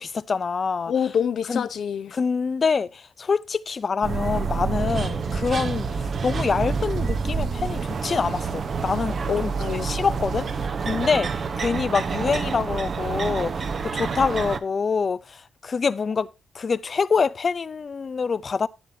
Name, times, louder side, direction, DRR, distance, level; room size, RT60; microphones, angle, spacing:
voice 1, 0.0-0.9 1.5-1.6 2.1-9.5 9.8-10.5 10.8-11.3 11.6-16.3 16.5-18.7, left 5 dB, 35° left, 0.5 m, -25 dB
voice 2, 0.9-2.1 9.3-9.9, left 7 dB, 60° left, 0.8 m, -26 dB
sound 1, 4.0-14.6, right 5 dB, 40° right, 0.9 m, -28 dB
sound 2, 5.2-10.7, right 4 dB, 60° right, 1.2 m, -37 dB
11.0 x 10.5 x 2.7 m
cardioid pair, 130°, 0 cm